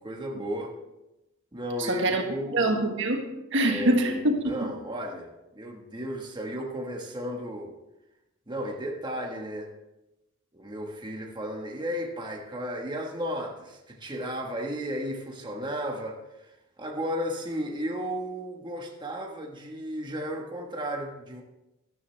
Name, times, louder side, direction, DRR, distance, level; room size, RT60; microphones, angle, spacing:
voice 1, 0.0-0.7 1.5-2.6 3.6-3.9 4.5-7.7 8.5-9.7 10.5-16.5 16.8-21.4, equal, 20° right, 1 dB, 1.4 m, -34 dB
voice 2, 1.8-2.2 2.5-4.7, right 1 dB, 65° right, 4 dB, 1.5 m, -25 dB
13.5 x 13.0 x 3.3 m, 0.96 s
head